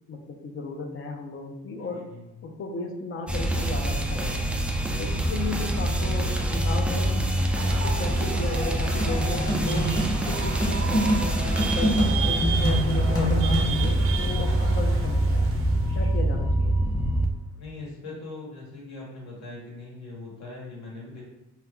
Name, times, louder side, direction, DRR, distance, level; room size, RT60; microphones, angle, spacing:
voice 1, 0.1-2.1 2.4-4.5 5.0-7.4 7.7-11.4 11.7-15.5 15.9-16.8, left 3 dB, 45° left, 3 dB, 0.6 m, -35 dB
voice 2, 1.8-2.5 17.6-21.2, left 2 dB, 65° left, -3 dB, 1.4 m, -41 dB
sound 1, 3.3-17.3, right 1 dB, 5° right, 0.3 m, -25 dB
sound 2, 7.5-16.1, right 5 dB, 45° right, 0.6 m, -34 dB
sound 3, 9.0-14.0, equal, 10° left, 0.9 m, -27 dB
2.7 x 2.3 x 3.6 m, 0.95 s
cardioid pair, 90°, 30 cm